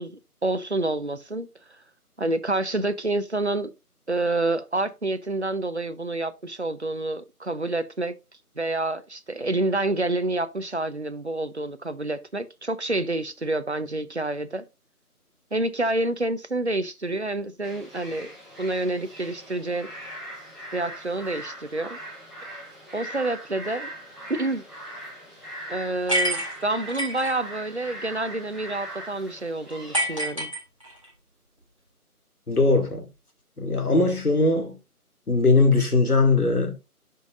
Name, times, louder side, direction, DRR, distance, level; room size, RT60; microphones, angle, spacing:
voice 1, 0.0-1.5 2.2-3.7 4.1-8.2 8.6-14.6 15.5-18.3 18.6-19.9 20.7-22.0 22.9-23.9 24.3-24.6 25.7-30.5, right 2 dB, 45° right, 0.6 m, -28 dB
sound 1, 17.6-30.3, right 1 dB, ahead, 1.0 m, -40 dB
sound 2, 26.1-27.3 29.9-31.1, right 1 dB, 20° right, 1.9 m, -27 dB
voice 2, 32.5-33.1 33.6-34.8 35.3-36.7, left 3 dB, 75° left, 2.5 m, -20 dB
11.5 x 5.4 x 2.5 m
figure-of-eight pair, 180°, 46 cm